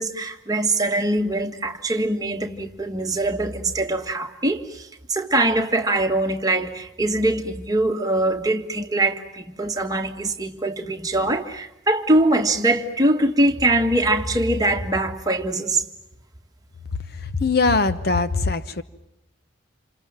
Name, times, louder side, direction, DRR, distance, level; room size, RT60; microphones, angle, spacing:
voice 1, 0.0-15.8, right 2 dB, 20° right, 1.7 m, -22 dB
voice 2, 17.2-18.8, left 3 dB, 50° left, 1.0 m, -21 dB
28.5 x 27.0 x 7.5 m
head